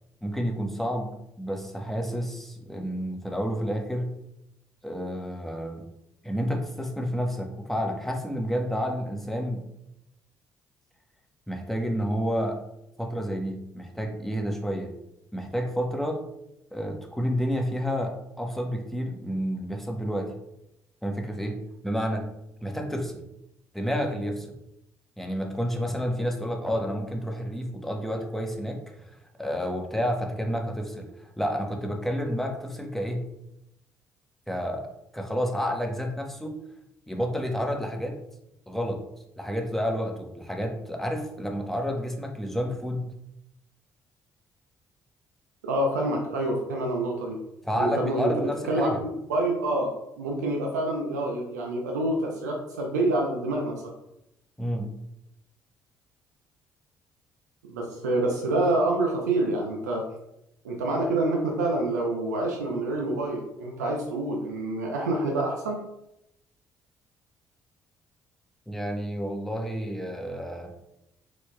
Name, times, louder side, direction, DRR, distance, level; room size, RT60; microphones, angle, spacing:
voice 1, 0.2-1.1 1.4-4.1 4.8-5.9 6.2-9.6 11.5-12.6 13.0-14.9 15.3-16.2 16.7-20.3 21.0-22.3 22.6-23.2 23.7-24.6 25.2-29.0 29.4-33.2 34.5-34.9 35.1-36.5 37.1-38.2 38.7-39.0 39.4-43.1 47.6-49.0 54.6-54.9 68.7-70.7, equal, 5° left, 2 dB, 1.0 m, -30 dB
voice 2, 45.6-47.4 47.8-48.3 48.7-53.9 57.6-60.0 60.6-65.8, right 2 dB, 85° right, 0 dB, 0.6 m, -27 dB
4.5 x 4.2 x 2.2 m, 0.83 s
hypercardioid pair, 45°, 9 cm